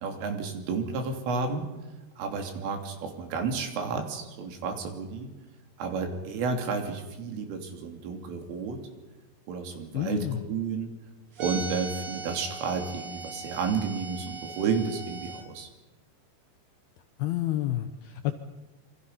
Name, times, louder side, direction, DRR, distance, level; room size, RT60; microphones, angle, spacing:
voice 1, 0.0-1.7 2.2-5.3 5.8-8.8 9.5-10.9 11.4-15.7, right 5 dB, 80° right, 4 dB, 5.5 m, -31 dB
voice 2, 9.9-10.4 17.2-18.3, left 14 dB, 75° left, 8 dB, 2.4 m, -29 dB
sound 1, 11.4-15.4, right 3 dB, 40° right, 1.7 m, -39 dB
27.5 x 25.5 x 5.8 m, 1.1 s
omnidirectional pair, 5.6 m